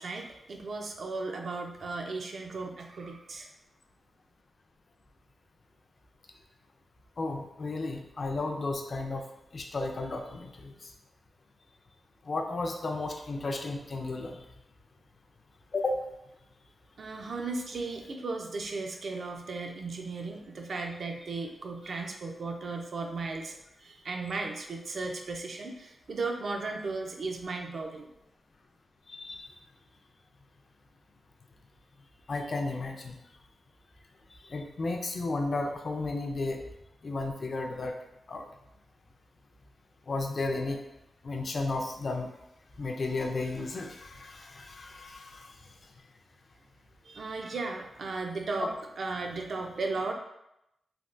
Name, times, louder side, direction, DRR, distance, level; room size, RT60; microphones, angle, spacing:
voice 1, 0.0-3.5 17.0-28.1 47.0-48.7 49.0-50.1, right 3 dB, 55° right, 2 dB, 0.4 m, -36 dB
voice 2, 7.2-9.3 9.5-10.7 12.3-14.4 15.7-16.0 29.1-29.5 32.3-33.2 34.4-36.6 37.0-37.9 38.3-38.5 40.1-40.8 41.2-42.3 42.8-45.5 48.6-48.7, left 3 dB, 40° left, 3 dB, 0.3 m, -33 dB
3.3 x 2.2 x 2.4 m, 0.84 s
wide cardioid pair, 150°, 0 cm